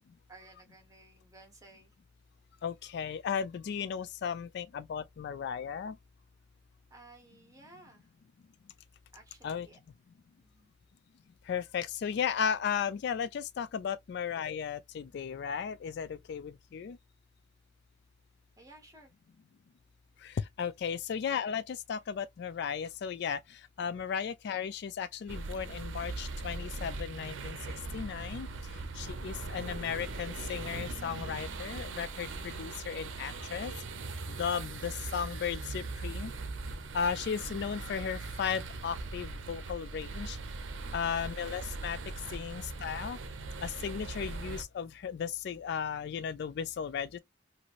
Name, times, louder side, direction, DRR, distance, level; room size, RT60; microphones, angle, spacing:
voice 1, 0.3-1.9 6.9-8.1 9.1-9.8 10.4-10.7 18.6-19.1, right 2 dB, 20° right, 1.2 m, -56 dB
voice 2, 2.6-6.0 9.4-9.7 11.5-17.0 20.2-27.6 27.9-33.8 34.3-36.3 36.9-40.4 40.9-42.0 42.3-43.2 43.6-47.2, left 7 dB, 60° left, 0.3 m, -35 dB
sound 1, 25.3-44.6, right 3 dB, 90° right, 0.6 m, -40 dB
3.0 x 2.6 x 2.4 m
head